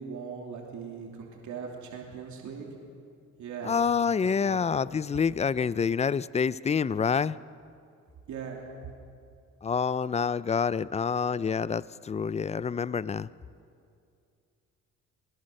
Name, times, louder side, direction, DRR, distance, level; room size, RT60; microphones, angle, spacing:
voice 1, 0.0-2.7 3.4-3.7 4.4-4.6 8.3-8.6, right 6 dB, 75° right, 0 dB, 2.9 m, -39 dB
voice 2, 3.6-7.4 9.6-13.3, left 6 dB, 20° left, 19 dB, 0.4 m, -27 dB
22.5 x 19.5 x 6.6 m, 2.4 s
cardioid pair, 90°, 30 cm